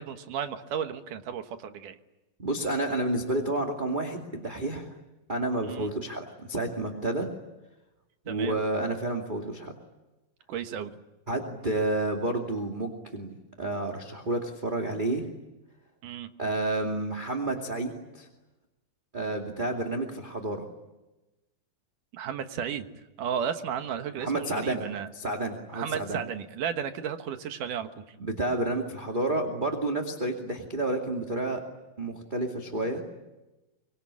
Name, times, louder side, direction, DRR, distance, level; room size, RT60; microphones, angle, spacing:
voice 1, 0.0-2.0 5.6-5.9 8.3-8.6 10.5-10.9 16.0-16.3 22.1-22.9 23.2-25.1 25.7-28.2, right 8 dB, 65° right, 8 dB, 2.9 m, -34 dB
voice 2, 2.4-4.9 5.3-7.3 8.3-9.7 11.3-15.3 16.4-18.3 19.1-20.6 24.2-24.8 25.1-26.2 28.2-31.6 32.0-33.0, right 2 dB, 15° right, 2 dB, 1.9 m, -30 dB
25.0 x 24.0 x 9.9 m, 1.0 s
omnidirectional pair, 4.1 m